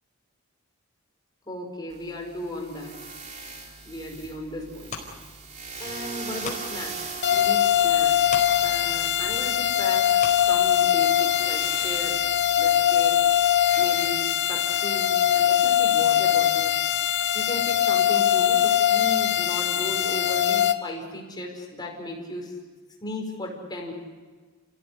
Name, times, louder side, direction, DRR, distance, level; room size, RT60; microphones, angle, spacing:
voice 1, 1.5-3.1 3.8-5.2 5.8-8.3 8.6-12.3 12.6-13.3 13.7-16.8 17.3-22.6 23.0-23.9, left 1 dB, 20° left, 1 dB, 5.2 m, -36 dB
sound 1, 1.9-16.5, right 4 dB, 35° right, 3.3 m, -42 dB
sound 2, 4.1-7.0 7.3-11.1 11.6-11.7, left 4 dB, 35° left, 4.7 m, -41 dB
sound 3, 7.2-20.7, left 11 dB, 55° left, 1.1 m, -22 dB
29.0 x 16.5 x 10.0 m, 1.4 s
head